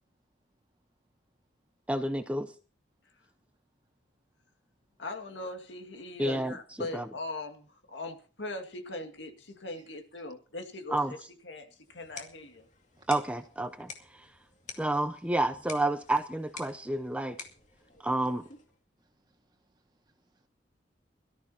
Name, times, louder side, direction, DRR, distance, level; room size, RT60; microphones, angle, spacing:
voice 1, 1.9-2.5 6.2-6.6 6.9-7.1 10.9-11.1 13.1-14.3 14.8-17.4 18.0-18.4, right 1 dB, 5° right, 0.6 m, -30 dB
voice 2, 5.0-12.7, left 2 dB, 80° left, 2.1 m, -40 dB
sound 1, 11.8-18.8, left 5 dB, 40° left, 2.3 m, -49 dB
voice 3, 17.7-18.1 19.0-20.5, right 2 dB, 25° right, 1.9 m, -69 dB
23.0 x 13.5 x 2.9 m
head